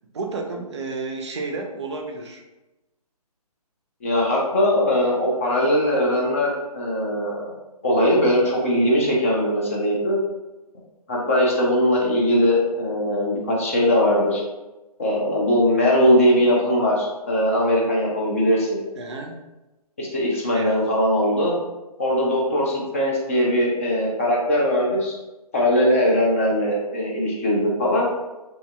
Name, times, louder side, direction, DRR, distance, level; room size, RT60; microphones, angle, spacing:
voice 1, 0.1-2.4 19.0-19.4 20.5-20.8, right 3 dB, 45° right, 2 dB, 0.4 m, -31 dB
voice 2, 4.0-7.5 7.8-10.2 11.1-14.4 15.0-18.8 20.0-21.5 22.0-25.2 25.5-28.1, equal, 20° left, -3 dB, 0.4 m, -20 dB
2.6 x 2.6 x 2.3 m, 1.0 s
figure-of-eight pair, 140°, 20 cm